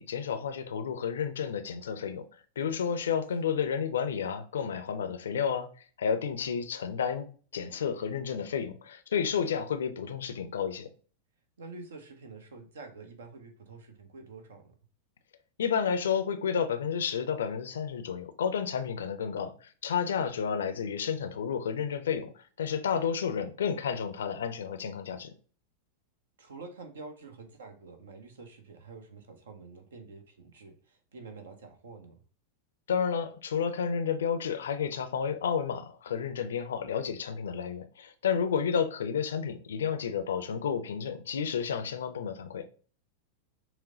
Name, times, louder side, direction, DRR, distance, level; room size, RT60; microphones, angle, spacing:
voice 1, 0.0-2.3 2.6-5.7 6.0-10.9 15.6-25.3 32.9-42.7, left 7 dB, 65° left, 0.5 m, -31 dB
voice 2, 11.6-14.7 26.4-32.2, right 4 dB, 65° right, 0.9 m, -47 dB
6.1 x 2.2 x 3.8 m
figure-of-eight pair, 90°, 0 cm